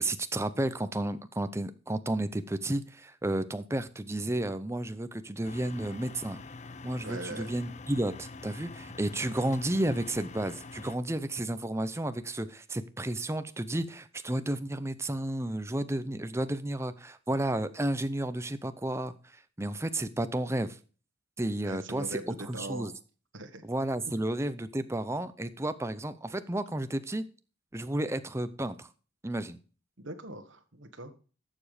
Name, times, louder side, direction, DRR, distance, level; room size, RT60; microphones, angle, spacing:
voice 1, 0.0-6.4 6.8-20.8 21.4-22.9 23.6-27.3 27.7-28.9 29.2-29.6, right 1 dB, 15° right, 12 dB, 0.6 m, -32 dB
sound 1, 5.4-11.0, left 3 dB, 35° left, 0.5 m, -45 dB
voice 2, 7.0-7.5 21.6-22.9 23.3-23.6 30.0-31.1, right 2 dB, 60° right, 7 dB, 1.5 m, -41 dB
11.5 x 7.1 x 5.0 m, 0.37 s
head